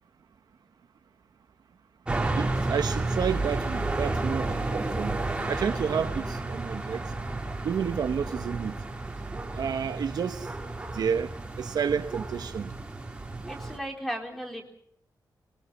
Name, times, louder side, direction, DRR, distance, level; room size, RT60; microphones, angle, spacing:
sound 1, 2.1-13.8, right 2 dB, 15° right, 3.0 m, -32 dB
voice 1, 2.4-5.2 5.5-7.0 7.6-8.8 9.6-10.5 10.9-11.3 11.6-12.8, right 7 dB, 65° right, 1.1 m, -30 dB
voice 2, 13.5-14.7, equal, 5° left, 4.0 m, -35 dB
27.5 x 22.5 x 5.5 m
wide cardioid pair, 180°, 7 cm